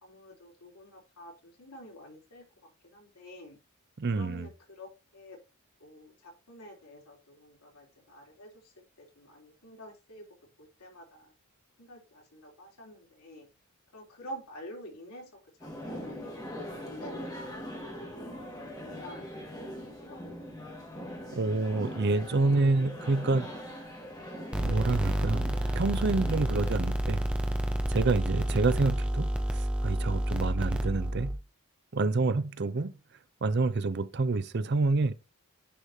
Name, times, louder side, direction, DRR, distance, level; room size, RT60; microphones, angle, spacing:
voice 1, 0.0-3.6 4.1-5.4 5.8-10.2 10.6-11.3 11.8-13.5 13.9-15.3 15.6-18.5 18.8-20.2 32.2-32.8, equal, 85° left, 3.5 m, -49 dB
voice 2, 4.0-4.5 21.3-23.6 24.6-27.2 27.9-31.3 31.9-32.9 33.4-35.1, right 3 dB, 50° right, 0.5 m, -28 dB
sound 1, 15.6-26.7, equal, 15° left, 1.9 m, -41 dB
sound 2, 24.5-31.4, right 1 dB, 5° right, 0.8 m, -29 dB
10.0 x 4.9 x 2.8 m
head